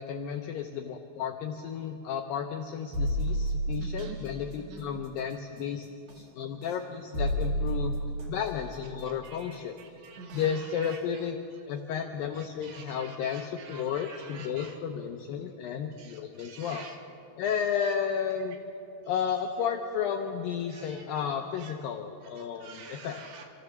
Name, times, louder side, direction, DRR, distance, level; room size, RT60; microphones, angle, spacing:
voice 1, 0.0-5.9 6.2-8.0 8.3-9.8 10.3-11.4 11.7-16.9 17.4-18.6 19.1-23.2, left 7 dB, 80° left, 4 dB, 2.0 m, -33 dB
sound 1, 2.9-4.2 6.1-6.2 7.1-8.5 10.3-10.4 10.9-11.0, right 1 dB, 50° right, 3.2 m, -30 dB
voice 2, 3.8-4.2 4.6-4.8 9.2-11.0 12.6-14.7 16.0-17.0 20.7-21.3 21.6-21.7 22.6-23.4, right 5 dB, 80° right, 3 dB, 4.2 m, -47 dB
27.0 x 14.5 x 7.1 m, 2.8 s
omnidirectional pair, 5.1 m